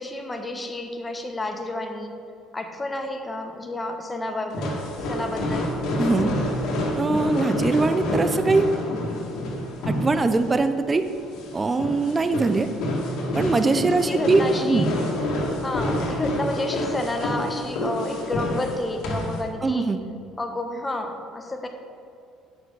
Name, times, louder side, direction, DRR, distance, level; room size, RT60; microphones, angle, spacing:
voice 1, 0.0-2.1 2.5-4.7 5.1-5.7 13.8-14.9 15.6-19.9 20.4-21.7, left 2 dB, 20° left, 4 dB, 1.2 m, -30 dB
sound 1, 4.5-19.4, left 1 dB, 70° left, 2.0 m, -28 dB
voice 2, 6.0-6.3 7.0-8.7 9.9-11.0 11.5-12.7 13.3-14.9 19.6-20.0, right 3 dB, 25° right, 10 dB, 0.6 m, -22 dB
9.4 x 6.7 x 4.8 m, 2.5 s
supercardioid pair, 85°, 0 cm